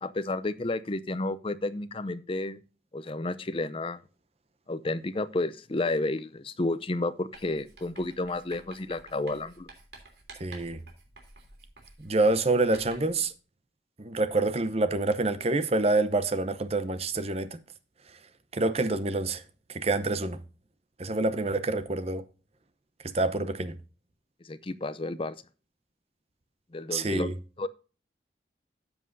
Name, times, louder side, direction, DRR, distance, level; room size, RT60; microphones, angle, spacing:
voice 1, 0.0-2.6 2.9-4.0 4.7-9.7 24.4-25.3 26.7-27.7, left 2 dB, 30° left, 0.6 m, -31 dB
Writing, 7.3-13.2, right 3 dB, 65° right, 3.0 m, -51 dB
voice 2, 10.4-10.8 12.0-13.3 14.0-17.6 18.5-19.4 19.7-20.4 21.0-22.2 23.1-23.8 26.9-27.3, right 2 dB, 35° right, 0.8 m, -27 dB
13.0 x 7.5 x 2.6 m
head